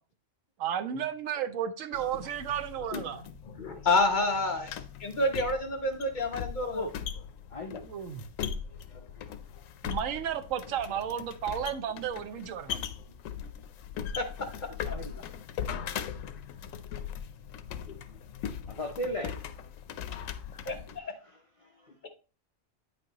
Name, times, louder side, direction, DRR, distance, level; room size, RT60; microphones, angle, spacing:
voice 1, 0.6-3.3 7.8-8.2 9.8-12.9, right 9 dB, 80° right, 1.0 m, -33 dB
sound 1, 1.9-21.0, left 8 dB, 85° left, 1.0 m, -40 dB
voice 2, 3.6-4.7 5.0-6.8 14.1-15.0 20.7-21.1, left 2 dB, 40° left, 0.9 m, -29 dB
voice 3, 7.5-7.8 8.9-9.3 14.8-15.1 18.7-19.4 21.2-21.9, left 1 dB, 65° left, 0.3 m, -37 dB
9.1 x 5.3 x 2.9 m
omnidirectional pair, 1.3 m